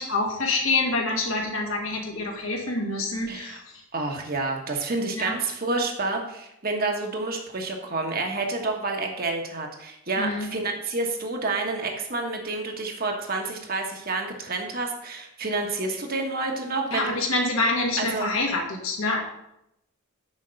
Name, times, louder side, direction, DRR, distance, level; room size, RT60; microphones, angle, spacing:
voice 1, 0.0-3.6 5.1-5.4 10.2-10.5 16.9-19.2, left 2 dB, 70° left, 0 dB, 1.9 m, -26 dB
voice 2, 3.3-3.6 3.9-17.2 18.0-18.3, right 3 dB, 45° right, 2 dB, 1.3 m, -29 dB
6.4 x 5.3 x 6.4 m, 0.81 s
head